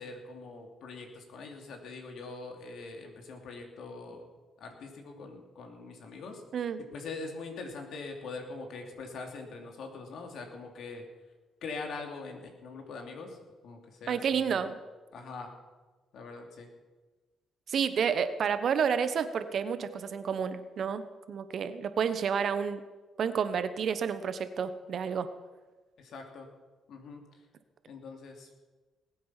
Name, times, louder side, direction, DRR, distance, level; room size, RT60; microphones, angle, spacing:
voice 1, 0.0-4.3 4.6-6.4 6.9-11.0 11.6-13.4 13.6-14.6 15.1-15.5 16.1-16.7 26.0-26.5 26.9-27.4 27.9-28.6, left 3 dB, 70° left, 3 dB, 2.7 m, -43 dB
voice 2, 14.1-14.8 17.7-21.0 21.3-22.8 23.2-25.3, right 7 dB, 60° right, 11 dB, 1.1 m, -30 dB
19.5 x 8.6 x 5.8 m, 1.3 s
cardioid pair, 90°, 0 cm